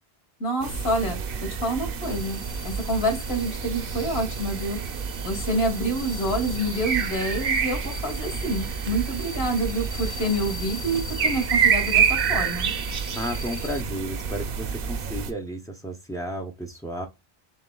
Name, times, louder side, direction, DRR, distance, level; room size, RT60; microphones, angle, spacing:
voice 1, 0.4-1.2 1.6-4.8 5.2-12.7, right 1 dB, 70° left, 1.8 m, -27 dB
sound 1, 0.6-15.3, right 6 dB, 65° right, 0.8 m, -28 dB
sound 2, 2.0-13.8, left 4 dB, 55° left, 1.3 m, -42 dB
voice 2, 13.1-17.1, equal, 5° left, 0.4 m, -33 dB
6.6 x 2.2 x 2.2 m
omnidirectional pair, 1.1 m